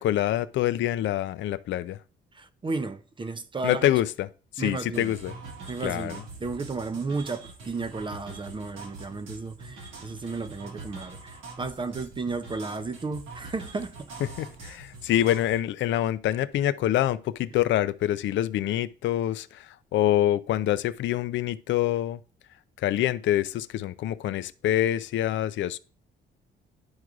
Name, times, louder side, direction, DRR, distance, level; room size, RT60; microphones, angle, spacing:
voice 1, 0.0-2.0 3.6-4.3 4.6-5.3 5.8-6.2 14.4-19.7 19.9-22.2 22.8-25.8, left 12 dB, 70° left, 0.4 m, -26 dB
voice 2, 2.3-3.8 4.6-5.1 5.7-14.1, right 3 dB, 25° right, 0.5 m, -33 dB
sound 1, 4.9-15.6, right 3 dB, 85° right, 1.8 m, -44 dB
10.5 x 4.7 x 2.4 m
cardioid pair, 90°, 20 cm